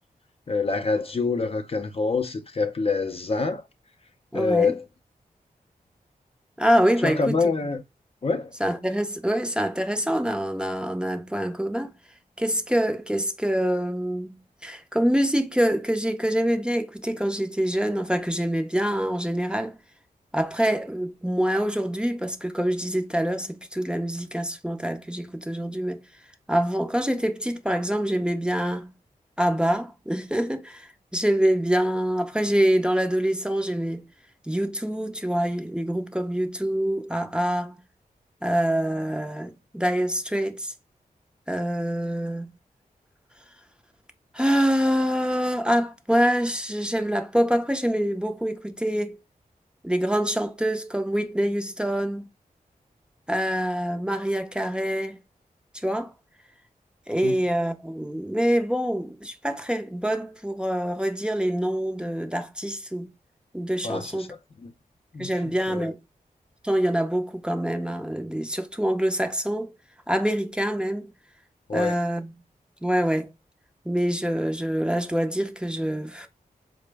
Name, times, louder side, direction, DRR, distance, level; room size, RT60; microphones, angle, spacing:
voice 1, 0.5-3.6 4.3-4.8 7.0-7.8 8.2-8.5 57.2-57.4 63.8-64.3 64.6-64.7 65.1-65.3 65.7-65.9 71.7-72.0, left 4 dB, 40° left, 0.4 m, -26 dB
voice 2, 4.3-4.7 6.6-7.5 8.6-11.9 12.4-14.4 14.6-19.8 20.3-26.0 26.5-28.9 29.4-34.0 34.5-37.7 38.4-40.7 41.5-42.5 44.3-49.2 49.8-52.2 53.3-55.2 55.7-56.1 57.1-63.1 63.5-64.3 65.2-66.0 66.6-69.7 70.1-71.1 71.7-72.3 72.8-73.3 73.9-76.3, equal, 5° right, 0.5 m, -25 dB
4.2 x 2.0 x 3.2 m
wide cardioid pair, 80°, 15 cm